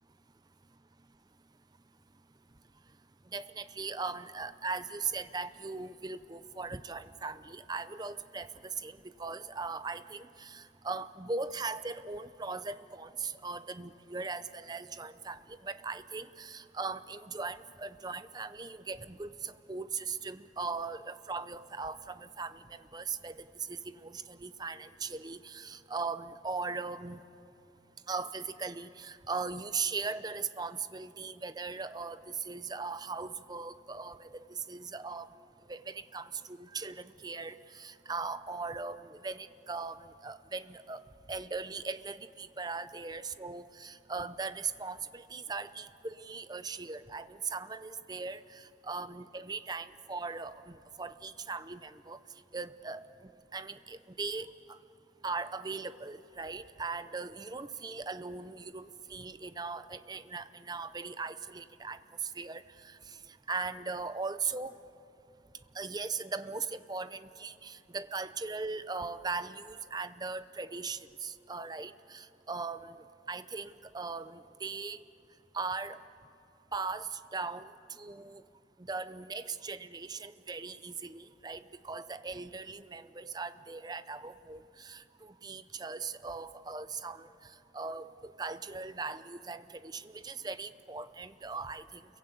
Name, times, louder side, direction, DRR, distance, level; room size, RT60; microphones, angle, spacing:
voice 1, 3.3-27.2 28.1-35.3 35.6-52.2 52.5-54.8 55.2-63.2 63.5-64.8 65.7-75.0 75.5-76.0 76.7-78.4 78.8-92.2, right 4 dB, 20° right, 13 dB, 0.6 m, -39 dB
29.5 x 22.5 x 8.4 m, 2.8 s
head